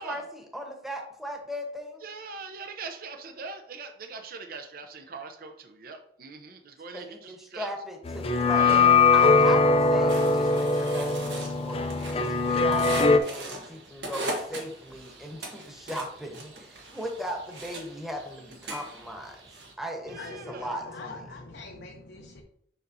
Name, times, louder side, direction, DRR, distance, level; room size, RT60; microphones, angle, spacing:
voice 1, 0.0-2.0 6.9-8.8 9.1-11.9 12.1-19.4 19.8-21.2, equal, ahead, 1 dB, 1.1 m, -37 dB
voice 2, 2.0-7.7 8.5-8.9 20.0-20.7, right 4 dB, 55° right, 6 dB, 0.7 m, -41 dB
sound 1, 8.1-13.2, left 4 dB, 35° left, 0.5 m, -21 dB
sound 2, 10.1-19.7, right 2 dB, 85° right, 1.3 m, -40 dB
voice 3, 20.1-22.4, left 3 dB, 75° left, 0 dB, 0.8 m, -43 dB
7.1 x 5.3 x 2.7 m, 0.68 s
head